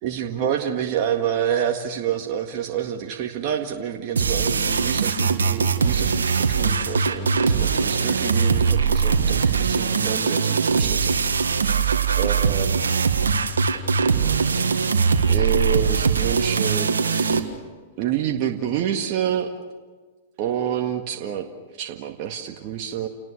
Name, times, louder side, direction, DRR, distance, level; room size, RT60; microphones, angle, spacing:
voice 1, 0.0-11.2 12.2-12.9 14.5-14.6 15.3-17.4 18.0-19.5 20.4-21.5 21.8-23.1, right 9 dB, 45° right, 3 dB, 1.9 m, -28 dB
sound 1, 4.2-17.4, right 5 dB, 85° right, 1.8 m, -21 dB
29.5 x 19.0 x 6.6 m, 1.4 s
hypercardioid pair, 110°, 0 cm